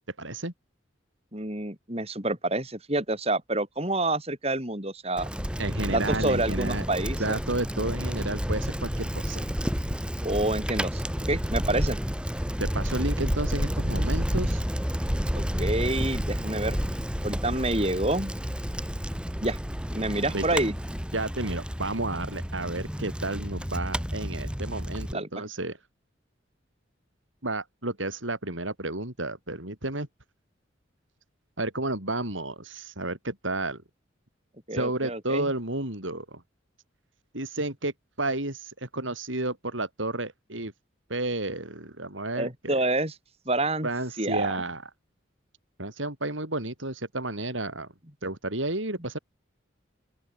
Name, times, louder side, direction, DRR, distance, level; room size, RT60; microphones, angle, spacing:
voice 1, 0.2-0.5 5.6-6.8 7.2-9.5 12.6-14.6 20.3-20.4 21.1-25.8 27.4-30.1 31.6-33.8 34.7-36.4 37.3-37.9 38.2-40.7 41.1-42.8 43.8-44.8 45.8-47.9 48.2-49.2, right 2 dB, 80° right, 6.8 m, -31 dB
voice 2, 1.3-5.3 5.9-7.4 10.2-11.0 11.3-12.0 15.3-16.8 17.2-18.3 19.4-19.6 19.9-20.7 25.1-25.3 34.7-35.5 42.4-43.2 43.5-43.9 44.2-44.5, right 2 dB, 30° right, 7.0 m, -28 dB
Bicycle, 5.2-25.1, equal, 5° right, 3.1 m, -30 dB
open air
head